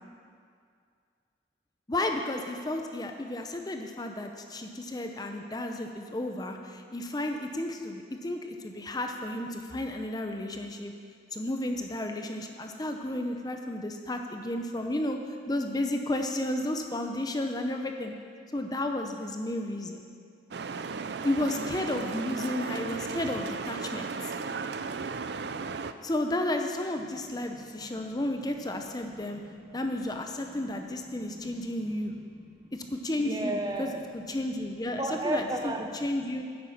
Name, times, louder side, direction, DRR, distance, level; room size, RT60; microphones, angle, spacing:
voice 1, 1.9-10.9 11.3-15.2 15.5-18.1 18.5-20.0 21.2-24.1 26.0-29.4 29.7-32.1 32.7-35.7 36.0-36.4, left 1 dB, 20° left, 4 dB, 0.7 m, -32 dB
sound 1, 20.5-25.9, right 4 dB, 65° right, 0.5 m, -35 dB
voice 2, 27.6-28.0 29.3-29.9 30.4-32.7 33.2-34.1 35.0-36.4, right 1 dB, 20° right, 4 dB, 0.8 m, -37 dB
10.0 x 9.6 x 7.2 m, 2.2 s
head